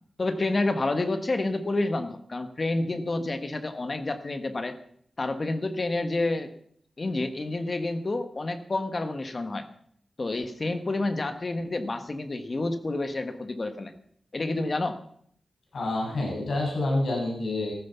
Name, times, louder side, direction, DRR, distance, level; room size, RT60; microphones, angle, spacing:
voice 1, 0.2-4.8 5.2-6.5 7.0-9.7 10.2-13.9 14.3-15.0, left 2 dB, 35° left, 8 dB, 1.3 m, -29 dB
voice 2, 15.7-17.7, left 2 dB, 65° left, -2 dB, 6.6 m, -28 dB
14.5 x 14.0 x 5.8 m, 0.64 s
wide cardioid pair, 170°, 0 cm